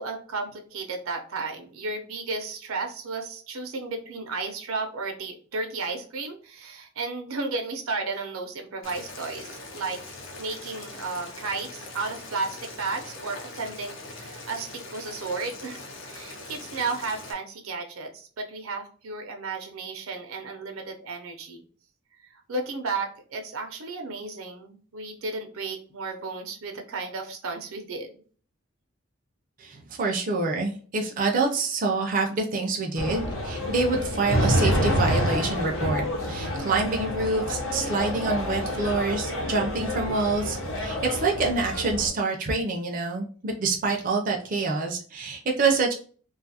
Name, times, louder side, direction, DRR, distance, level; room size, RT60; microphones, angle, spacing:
voice 1, 0.0-10.0 10.4-21.7 22.2-28.1, right 3 dB, 85° right, 4 dB, 0.6 m, -33 dB
Boiling, 8.8-17.3, left 2 dB, 60° left, 0.6 m, -42 dB
voice 2, 29.6-45.9, right 3 dB, 40° right, 1 dB, 0.4 m, -26 dB
sound 1, 33.0-42.1, equal, 85° left, 0.9 m, -28 dB
2.5 x 2.3 x 2.7 m, 0.42 s
head